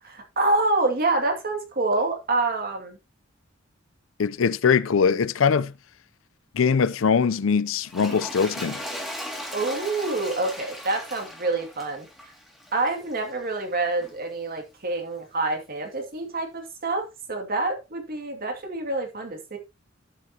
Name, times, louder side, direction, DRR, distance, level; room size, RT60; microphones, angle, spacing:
voice 1, 0.1-3.0 9.5-12.3 12.7-19.6, right 2 dB, 50° right, 2.3 m, -27 dB
voice 2, 4.2-5.7 6.5-8.8, left 6 dB, 80° left, 0.5 m, -22 dB
Toilet flush, 7.8-13.3 14.0-14.1, equal, ahead, 2.3 m, -37 dB
11.5 x 7.4 x 2.8 m
head